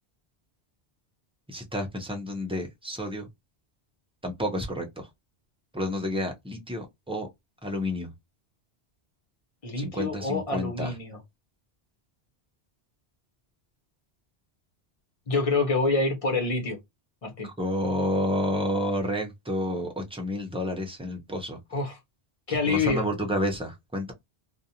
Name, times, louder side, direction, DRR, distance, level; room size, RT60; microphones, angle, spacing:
voice 1, 1.5-3.3 4.2-5.1 5.7-7.3 7.6-8.1 9.8-10.9 17.4-21.6 22.7-24.1, left 1 dB, 10° right, 0.3 m, -30 dB
voice 2, 9.6-11.2 15.3-16.8 17.2-17.5 21.7-22.0 22.5-23.0, left 3 dB, 35° left, 0.8 m, -26 dB
2.5 x 2.1 x 2.7 m
omnidirectional pair, 1.1 m